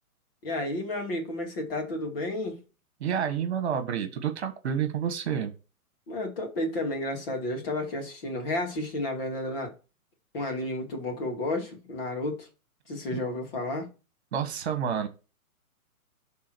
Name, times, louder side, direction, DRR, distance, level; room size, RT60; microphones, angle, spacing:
voice 1, 0.4-2.6 6.1-9.7 10.3-12.5 12.9-13.9, left 1 dB, 40° left, 2.6 m, -32 dB
voice 2, 3.0-5.5 13.1-13.2 14.3-15.1, right 8 dB, 45° right, 1.5 m, -29 dB
11.0 x 3.7 x 4.6 m
hypercardioid pair, 160°, 44 cm